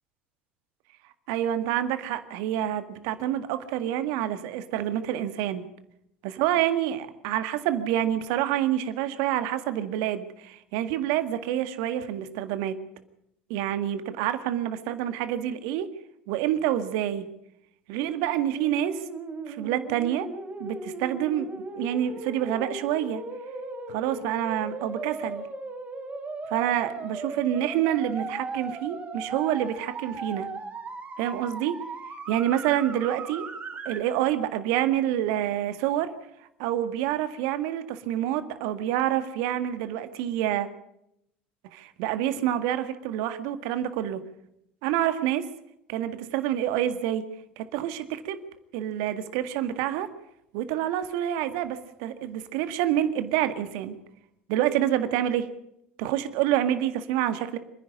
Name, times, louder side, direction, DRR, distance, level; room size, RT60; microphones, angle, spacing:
voice 1, 1.3-5.6 6.2-12.8 13.5-15.9 16.3-17.3 17.9-19.0 19.5-20.3 20.6-23.2 23.9-25.4 26.5-30.5 31.2-31.8 32.3-33.5 33.9-36.1 36.6-40.7 41.7-44.2 44.8-45.5 45.9-47.2 47.6-48.4 48.7-50.1 50.5-54.0 54.5-55.5 56.0-57.6, right 11 dB, 65° right, 10 dB, 1.9 m, -27 dB
sound 1, 18.5-34.0, right 3 dB, 25° right, 5.3 m, -37 dB
27.0 x 10.5 x 9.9 m, 0.79 s
hypercardioid pair, 75°, 6 cm